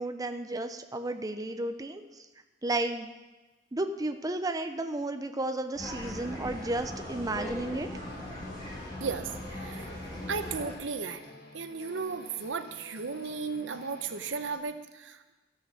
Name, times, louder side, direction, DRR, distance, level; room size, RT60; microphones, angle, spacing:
voice 1, 0.0-2.0 2.6-3.2 3.7-7.9, right 2 dB, 20° right, 7 dB, 0.7 m, -33 dB
sound 1, 5.7-10.7, left 1 dB, 25° left, 5.0 m, -39 dB
sound 2, 8.0-14.6, left 2 dB, 60° left, 1.5 m, -51 dB
voice 2, 9.0-9.9 10.3-11.2 11.5-15.3, right 5 dB, 85° right, 9 dB, 0.8 m, -35 dB
13.5 x 8.6 x 6.3 m, 1.2 s
head